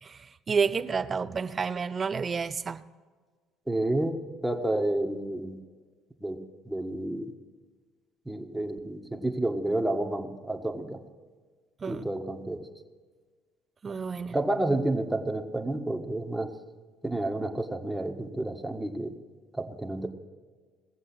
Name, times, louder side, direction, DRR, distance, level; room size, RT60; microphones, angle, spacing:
voice 1, 0.0-2.8 11.8-12.0 13.8-14.4, right 5 dB, 35° right, 0.7 m, -30 dB
voice 2, 3.7-4.2 4.4-5.6 6.2-7.3 8.2-11.0 11.9-12.7 14.3-16.5 17.0-19.1 19.5-20.1, right 1 dB, 5° right, 1.6 m, -30 dB
19.0 x 7.5 x 6.2 m
supercardioid pair, 75°, 0 cm